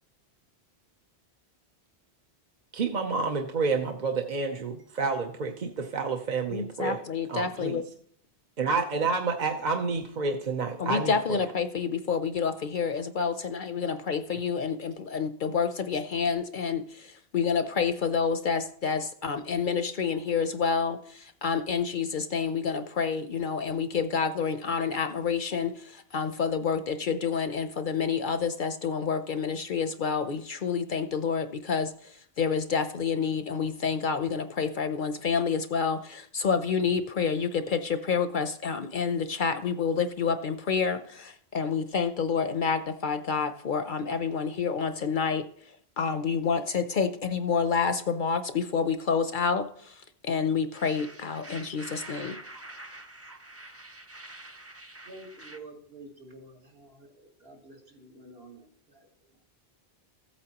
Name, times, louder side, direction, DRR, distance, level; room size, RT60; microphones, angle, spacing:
voice 1, 2.7-7.0 7.3-7.8 8.6-11.4, right 4 dB, 50° right, 3 dB, 0.8 m, -29 dB
voice 2, 6.5-7.8 10.8-52.4, left 6 dB, 55° left, 9 dB, 0.7 m, -28 dB
sound 1, 50.7-55.6, right 1 dB, 15° right, 0.6 m, -46 dB
voice 3, 53.1-53.4 53.7-53.9 55.0-59.1, right 2 dB, 65° right, 0 dB, 2.3 m, -50 dB
15.0 x 8.4 x 2.9 m, 0.63 s
omnidirectional pair, 1.1 m